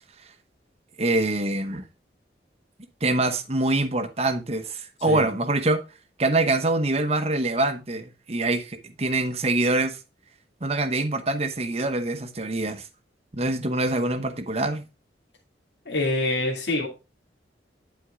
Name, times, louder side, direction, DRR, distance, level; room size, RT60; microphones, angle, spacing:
voice 1, 1.0-1.8 3.0-5.8 6.2-10.0 10.6-12.9 13.3-14.8, right 2 dB, 35° right, 1.0 m, -25 dB
voice 2, 15.9-16.9, left 2 dB, 70° left, 2.2 m, -25 dB
11.0 x 4.6 x 3.7 m
head